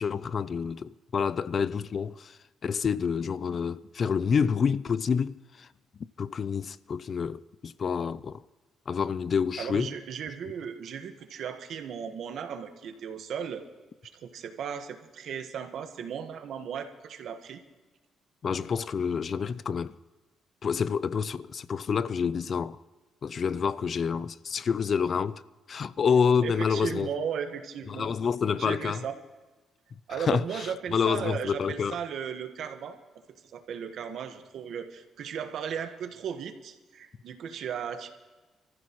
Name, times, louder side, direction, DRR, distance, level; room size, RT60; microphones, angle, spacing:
voice 1, 0.0-2.4 2.6-5.7 6.2-8.4 8.9-9.9 18.4-20.0 20.6-22.8 23.2-25.4 25.7-27.1 27.9-29.0 30.2-32.0, left 6 dB, 50° left, 0.5 m, -28 dB
voice 2, 9.6-13.6 14.1-17.6 26.4-28.1 28.5-29.1 30.1-33.0 33.5-38.1, right 7 dB, 70° right, 1.4 m, -36 dB
28.0 x 14.5 x 3.1 m
cardioid pair, 90°, 0 cm